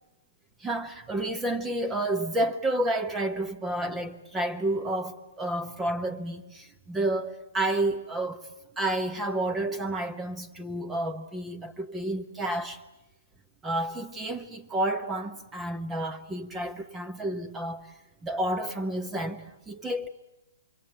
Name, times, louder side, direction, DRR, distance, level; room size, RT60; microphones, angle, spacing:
voice 1, 0.6-12.8 13.6-17.9 18.2-20.1, right 1 dB, 15° right, 1.3 m, -30 dB
26.5 x 22.5 x 9.1 m
hypercardioid pair, 130°, 0 cm